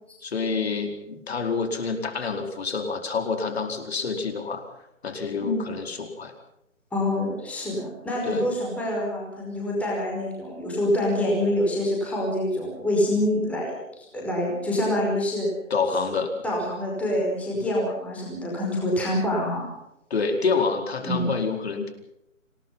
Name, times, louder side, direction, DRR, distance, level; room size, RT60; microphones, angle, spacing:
voice 1, 0.2-4.6 5.0-6.3 8.2-8.5 15.7-16.3 20.1-21.9, left 4 dB, 50° left, 5 dB, 4.7 m, -27 dB
voice 2, 6.9-15.5 16.4-19.7 21.0-21.3, left 1 dB, 5° left, -3 dB, 5.1 m, -26 dB
28.0 x 19.5 x 5.7 m, 0.83 s
figure-of-eight pair, 160°, 40 cm